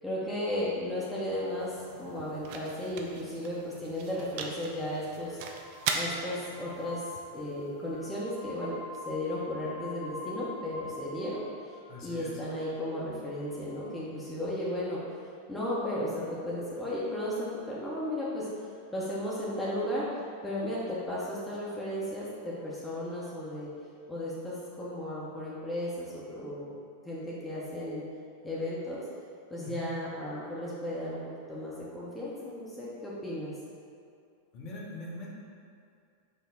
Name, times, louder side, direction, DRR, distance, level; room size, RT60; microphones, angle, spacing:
voice 1, 0.0-5.4 5.9-7.1 7.3-8.8 9.1-11.5 12.0-15.0 15.5-18.5 18.9-20.1 20.4-23.7 24.1-26.7 27.0-28.0 28.4-29.1 29.5-31.2 31.5-33.5, left 1 dB, 10° left, -8 dB, 0.7 m, -35 dB
sound 1, 0.9-9.0, right 4 dB, 50° right, 0.4 m, -40 dB
sound 2, 4.0-4.9 5.5-14.3 16.3-16.4 18.7-20.1 20.5-20.6 20.8-21.3 21.9-23.6, left 2 dB, 55° left, 0.5 m, -47 dB
voice 2, 11.9-12.4 29.6-29.9 34.5-35.3, left 2 dB, 40° left, -5 dB, 0.9 m, -41 dB
5.3 x 2.1 x 3.7 m, 2.3 s
figure-of-eight pair, 90°, 0 cm